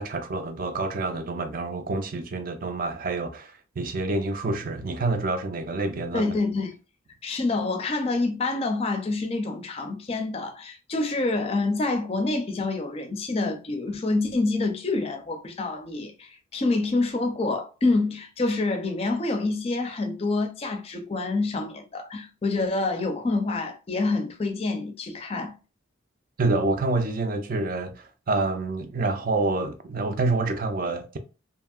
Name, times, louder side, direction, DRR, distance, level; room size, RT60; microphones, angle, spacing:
voice 1, 0.0-6.3 26.4-31.2, right 3 dB, 45° right, 0.4 m, -27 dB
voice 2, 6.1-6.7 7.2-25.5, left 3 dB, 30° left, 0.4 m, -27 dB
2.8 x 2.7 x 2.3 m
head